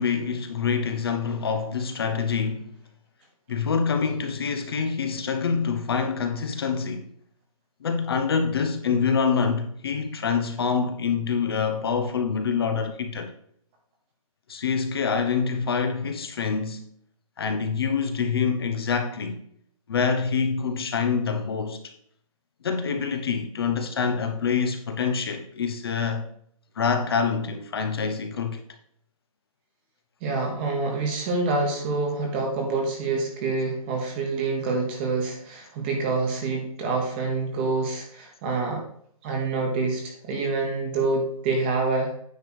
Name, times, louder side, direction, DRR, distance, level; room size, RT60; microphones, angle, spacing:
voice 1, 0.0-2.7 3.5-7.1 7.8-13.3 14.5-16.9 17.4-19.4 19.9-21.9 22.6-26.3 26.8-28.6, left 5 dB, 45° left, 0.8 m, -26 dB
voice 2, 30.2-38.8 39.2-42.1, right 3 dB, 20° right, 1.3 m, -26 dB
9.4 x 3.4 x 6.0 m
hypercardioid pair, 175°, 18 cm